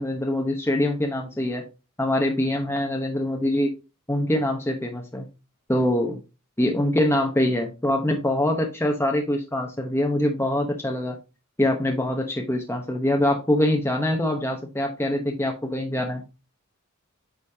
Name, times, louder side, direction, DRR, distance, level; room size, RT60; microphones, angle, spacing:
voice 1, 0.0-1.6 2.0-3.7 4.1-5.3 5.7-6.2 6.6-11.2 11.6-16.2, left 1 dB, 10° left, 2 dB, 1.0 m, -24 dB
8.4 x 5.2 x 2.8 m, 0.28 s
head